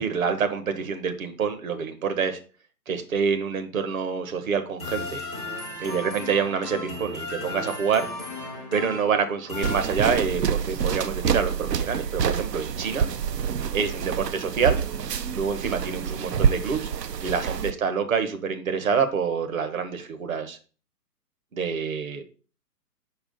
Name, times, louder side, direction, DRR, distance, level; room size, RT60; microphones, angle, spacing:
voice 1, 0.0-2.4 2.9-5.2 5.8-8.1 8.7-13.1 13.7-14.8 15.4-16.9 17.2-20.6 21.5-22.2, right 6 dB, 55° right, 8 dB, 1.4 m, -27 dB
sound 1, 4.8-10.5, left 3 dB, 10° right, 0.4 m, -35 dB
sound 2, 9.6-17.7, right 7 dB, 80° right, 0.6 m, -27 dB
4.9 x 4.8 x 5.3 m, 0.38 s
figure-of-eight pair, 130°, 48 cm